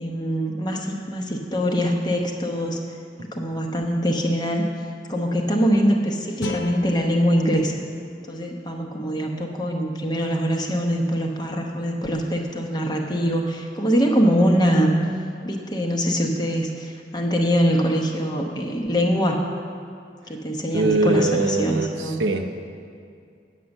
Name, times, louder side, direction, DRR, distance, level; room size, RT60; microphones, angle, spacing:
voice 1, 0.0-2.8 3.3-4.6 5.1-7.7 8.3-15.0 15.4-19.5 20.3-22.2, equal, 25° left, 2 dB, 0.8 m, -23 dB
sound 1, 6.4-9.5, left 3 dB, 70° left, 0.6 m, -37 dB
voice 2, 20.7-22.5, right 2 dB, 85° right, 6 dB, 0.7 m, -22 dB
9.3 x 6.5 x 7.1 m, 2.3 s
head